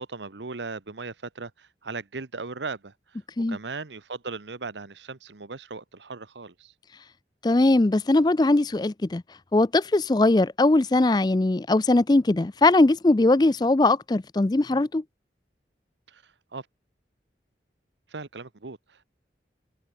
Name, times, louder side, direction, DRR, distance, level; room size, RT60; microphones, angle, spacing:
voice 1, 0.0-3.2 3.5-6.7 16.1-16.7 18.1-19.0, right 4 dB, 90° right, 1.1 m, -38 dB
voice 2, 7.4-9.2 9.5-15.0, left 2 dB, 25° left, 0.4 m, -20 dB
head